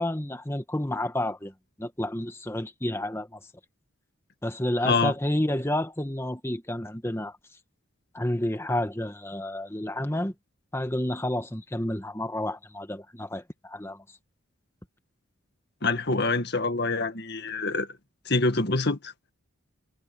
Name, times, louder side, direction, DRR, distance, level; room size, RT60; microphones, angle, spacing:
voice 1, 0.0-1.5 1.8-3.4 4.4-7.4 8.1-10.3 10.7-14.0, left 1 dB, 10° left, 1.4 m, -30 dB
voice 2, 15.8-17.9 18.3-19.1, left 3 dB, 50° left, 1.9 m, -25 dB
head